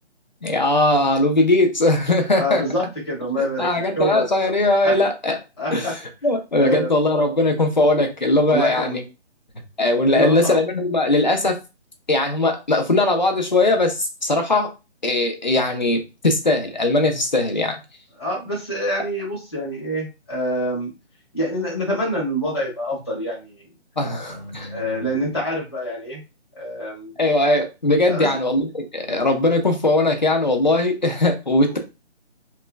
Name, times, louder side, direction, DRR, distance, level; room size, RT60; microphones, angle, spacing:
voice 1, 0.4-2.6 3.4-5.4 5.7-5.9 6.2-9.0 9.8-11.6 12.1-14.7 15.0-17.8 24.0-25.1 27.2-31.8, left 2 dB, 40° left, 5 dB, 0.4 m, -20 dB
voice 2, 2.3-4.3 4.8-5.0 5.6-5.9 6.6-6.9 8.5-8.9 10.0-10.6 18.2-20.9 21.3-23.6 24.0-24.4 24.7-26.2 26.6-27.1 28.1-28.3 31.7-31.8, equal, 20° left, -5 dB, 0.9 m, -26 dB
3.0 x 2.2 x 2.2 m, 0.27 s
hypercardioid pair, 180°, 34 cm